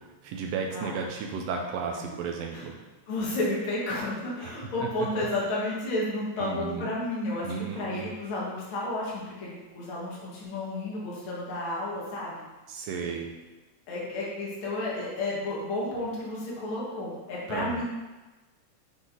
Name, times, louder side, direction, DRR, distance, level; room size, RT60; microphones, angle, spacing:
voice 1, 0.0-2.8 4.4-5.1 6.4-6.9 7.4-8.1 12.7-13.3 17.5-17.8, right 5 dB, 80° right, 2 dB, 1.5 m, -34 dB
voice 2, 3.1-12.4 13.9-17.8, left 2 dB, 50° left, -5 dB, 2.0 m, -32 dB
6.3 x 3.9 x 3.8 m, 1.2 s
omnidirectional pair, 3.4 m